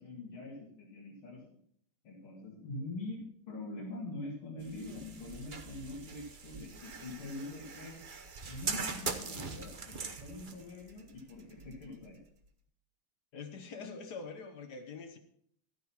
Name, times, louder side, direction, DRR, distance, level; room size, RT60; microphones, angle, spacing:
voice 1, 0.0-1.6 2.0-8.0 8.4-12.2, left 2 dB, 85° left, -4 dB, 3.2 m, -44 dB
sound 1, 4.6-12.5, right 5 dB, 80° right, 0.4 m, -42 dB
voice 2, 13.3-15.2, left 4 dB, 55° left, 7 dB, 1.4 m, -44 dB
13.0 x 9.4 x 4.4 m, 0.66 s
omnidirectional pair, 2.3 m